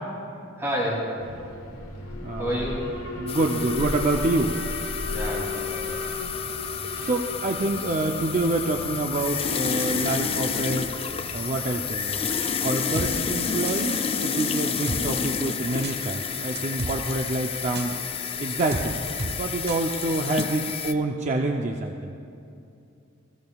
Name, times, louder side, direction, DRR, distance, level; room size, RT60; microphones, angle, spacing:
voice 1, 0.3-1.2 2.4-2.9 5.1-6.1, equal, 10° right, -5 dB, 2.7 m, -30 dB
Alarm, 1.2-13.2, left 2 dB, 75° left, 1.3 m, -36 dB
voice 2, 2.2-2.7 3.2-4.5 7.0-10.9 11.3-12.2 12.6-18.0 18.4-22.1, right 2 dB, 35° right, 2 dB, 0.5 m, -27 dB
sound 1, 3.3-20.9, left 6 dB, 25° left, 0.4 m, -30 dB
sound 2, 13.0-13.1 13.7-14.0 14.9-15.0 15.8-16.0 16.6-17.0 17.8-17.9 18.7-18.9 19.2-19.3 19.7-19.8 20.4-20.5, right 2 dB, 55° right, 1.0 m, -31 dB
21.0 x 15.0 x 2.3 m, 2.7 s
head